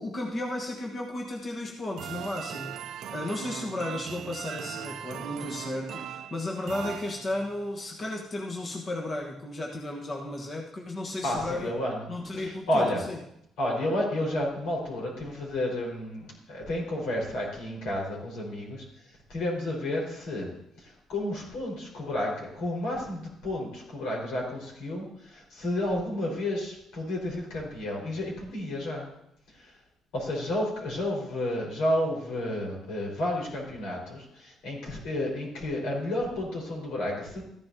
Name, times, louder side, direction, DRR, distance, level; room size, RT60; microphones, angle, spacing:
voice 1, 0.0-11.7 12.1-13.2, left 1 dB, 35° left, 0 dB, 1.2 m, -34 dB
sound 1, 2.0-7.7, right 10 dB, 70° right, 0.5 m, -39 dB
voice 2, 11.2-12.1 12.4-13.0 13.6-18.8 19.3-29.1 29.5-29.7 30.1-37.4, left 1 dB, 85° left, -2 dB, 4.6 m, -31 dB
14.0 x 11.0 x 2.8 m, 0.77 s
cardioid pair, 105°, 0 cm